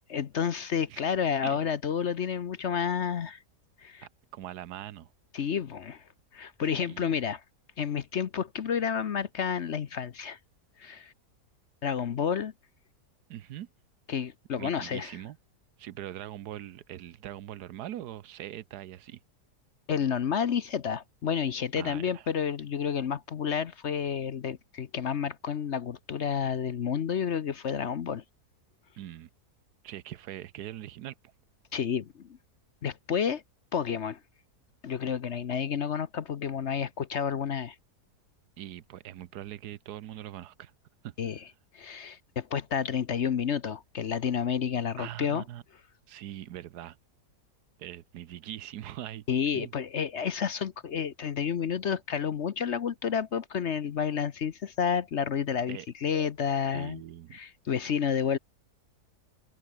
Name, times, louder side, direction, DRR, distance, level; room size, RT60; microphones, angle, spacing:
voice 1, 0.0-3.4 3.8-4.1 5.3-6.0 6.3-7.4 7.8-10.4 10.8-11.1 11.8-12.5 14.1-15.2 19.9-28.2 31.7-32.3 32.8-33.4 33.7-34.2 34.8-37.7 41.2-41.4 41.7-45.4 49.3-57.0 57.3-58.4, left 7 dB, 50° left, 1.0 m, -30 dB
voice 2, 4.0-5.1 6.6-7.1 13.3-13.7 14.6-15.4 15.8-19.2 21.8-22.3 29.0-29.3 29.8-31.1 38.6-40.7 41.0-41.1 45.0-45.6 46.1-47.0 47.8-49.2 49.5-49.7 55.7-55.9 56.7-57.4, right 12 dB, 80° right, 1.3 m, -42 dB
omnidirectional pair, 1.7 m